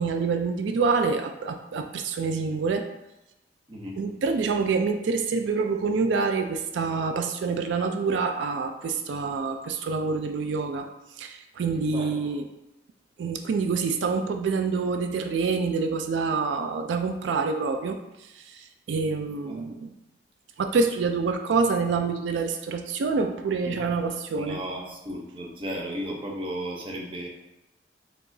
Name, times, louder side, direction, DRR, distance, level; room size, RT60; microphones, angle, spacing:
voice 1, 0.0-2.9 4.0-10.9 11.2-12.4 13.2-19.9 20.6-24.6, right 4 dB, 85° right, 6 dB, 0.3 m, -27 dB
voice 2, 3.7-4.0 11.7-12.3 19.5-19.7 23.7-23.9 24.4-27.3, equal, 30° right, -2 dB, 0.6 m, -35 dB
4.6 x 3.4 x 2.6 m, 0.94 s
head